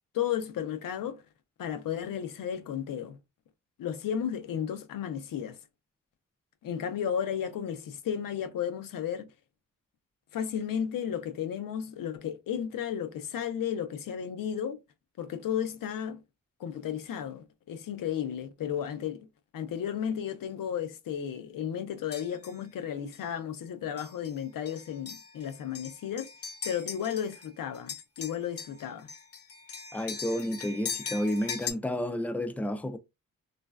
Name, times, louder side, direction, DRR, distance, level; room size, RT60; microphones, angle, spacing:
voice 1, 0.1-1.2 1.6-3.2 3.8-5.6 6.6-9.3 10.3-14.8 15.2-16.2 16.6-19.3 19.5-26.3 26.6-29.1, left 9 dB, 85° left, 0.6 m, -33 dB
sound 1, 22.1-22.6 23.1-23.3 24.0-24.3 24.7-27.5 27.7-31.7, left 6 dB, 45° left, 0.7 m, -40 dB
voice 2, 29.9-33.0, equal, 5° left, 0.3 m, -31 dB
3.1 x 2.5 x 2.2 m
wide cardioid pair, 115°, 33 cm